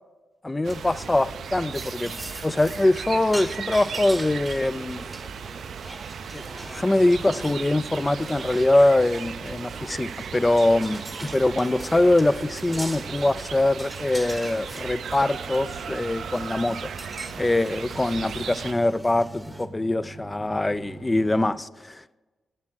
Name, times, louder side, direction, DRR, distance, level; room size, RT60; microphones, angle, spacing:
voice 1, 0.4-2.1 2.4-5.1 6.3-16.9 17.4-22.2, left 2 dB, 15° left, 0.3 m, -23 dB
sound 1, 0.6-19.7, right 1 dB, 10° right, 0.9 m, -41 dB
sound 2, 0.6-18.7, right 7 dB, 75° right, 0.4 m, -37 dB
sound 3, 6.9-21.5, right 2 dB, 90° left, 1.8 m, -47 dB
8.6 x 7.3 x 6.2 m
cardioid pair, 95°, 0 cm